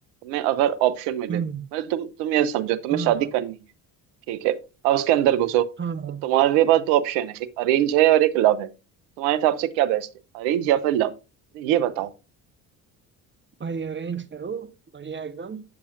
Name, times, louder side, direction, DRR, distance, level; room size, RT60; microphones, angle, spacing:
voice 1, 0.2-1.4 1.7-3.5 4.3-4.6 4.8-5.7 6.2-8.7 9.2-10.1 10.3-11.1 11.5-12.1, right 12 dB, 80° right, 0.9 m, -22 dB
voice 2, 1.3-1.7 2.9-3.3 5.8-6.2 13.6-15.6, right 6 dB, 25° right, 1.0 m, -32 dB
9.6 x 6.9 x 2.5 m
hypercardioid pair, 55°, 46 cm